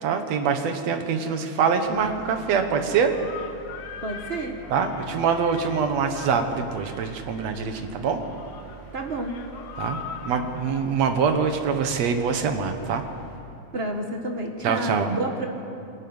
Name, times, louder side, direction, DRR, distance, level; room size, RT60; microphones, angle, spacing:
voice 1, 0.0-3.2 4.7-8.2 9.8-13.0 14.6-15.2, right 6 dB, 65° right, 6 dB, 2.5 m, -24 dB
sound 1, 1.8-13.4, right 7 dB, 85° right, 7.2 m, -46 dB
sound 2, 3.1-12.6, left 7 dB, 70° left, 2.2 m, -42 dB
voice 2, 4.0-4.6 8.9-9.4 13.7-15.5, right 2 dB, 35° right, 3 dB, 1.0 m, -29 dB
23.5 x 13.0 x 9.6 m, 2.7 s
omnidirectional pair, 3.3 m